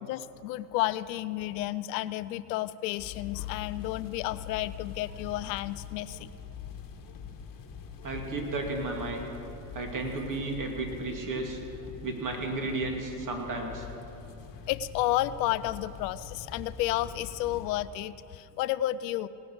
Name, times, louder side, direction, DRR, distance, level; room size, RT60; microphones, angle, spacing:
voice 1, 0.0-6.3 14.7-19.3, left 15 dB, 85° left, 16 dB, 0.6 m, -31 dB
sound 1, 3.0-17.8, left 6 dB, 40° left, 1.4 m, -44 dB
voice 2, 8.0-9.3 9.7-11.6 12.0-13.9, right 2 dB, 40° right, 2 dB, 2.5 m, -33 dB
18.5 x 6.6 x 7.8 m, 2.8 s
hypercardioid pair, 80°, 50 cm